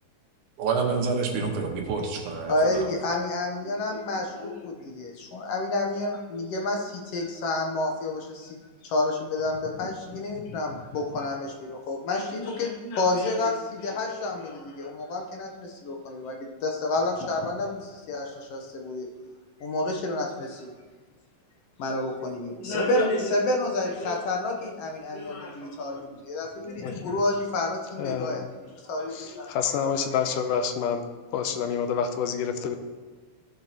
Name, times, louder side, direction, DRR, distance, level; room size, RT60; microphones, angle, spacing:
voice 1, 0.6-2.9, right 4 dB, 70° right, 2 dB, 2.6 m, -28 dB
voice 2, 2.5-8.6 8.8-19.1 19.6-20.7 21.8-28.4 28.8-30.3, left 2 dB, 65° left, 1 dB, 1.6 m, -29 dB
voice 3, 28.0-28.5 29.1-31.0 31.3-32.8, left 7 dB, 85° left, 7 dB, 2.3 m, -28 dB
16.5 x 7.4 x 2.9 m, 1.4 s
omnidirectional pair, 3.8 m